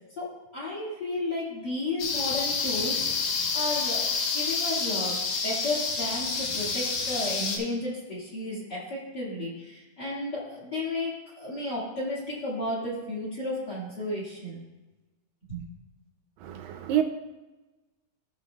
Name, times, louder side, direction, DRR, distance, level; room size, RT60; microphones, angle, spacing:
voice 1, 0.1-3.2 3.5-14.6 15.5-15.6, left 1 dB, 35° left, -6 dB, 2.0 m, -33 dB
sound 1, 2.0-7.6, left 4 dB, 65° left, 2.1 m, -28 dB
voice 2, 16.4-17.0, right 11 dB, 80° right, 6 dB, 2.2 m, -27 dB
15.5 x 6.6 x 2.3 m, 1.1 s
omnidirectional pair, 4.2 m